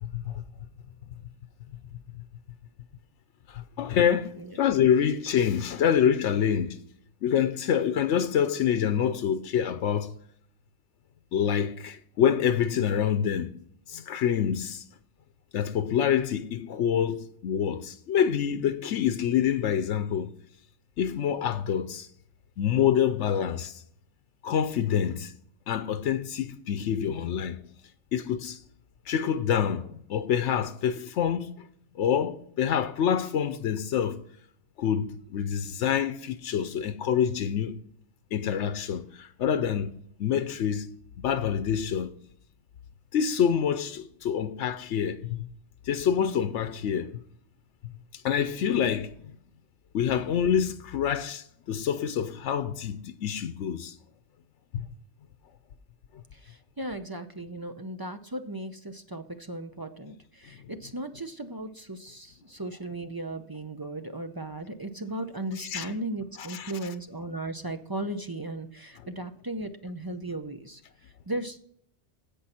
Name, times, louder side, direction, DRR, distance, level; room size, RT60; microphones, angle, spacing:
voice 1, 0.0-0.4 3.5-6.8 7.2-10.1 11.3-13.5 13.9-14.8 15.5-20.3 21.0-22.1 22.6-23.8 24.4-25.3 25.7-27.6 28.1-28.6 29.1-31.7 31.9-34.2 34.8-37.8 38.3-39.9 40.2-42.2 43.1-45.5 45.8-47.2 48.1-49.4 49.9-53.9 54.7-54.9 65.6-65.9 66.4-66.7, left 8 dB, 90° left, 1.0 m, -26 dB
voice 2, 56.3-71.6, right 1 dB, 25° right, 0.5 m, -36 dB
16.5 x 5.4 x 4.3 m
omnidirectional pair, 1.2 m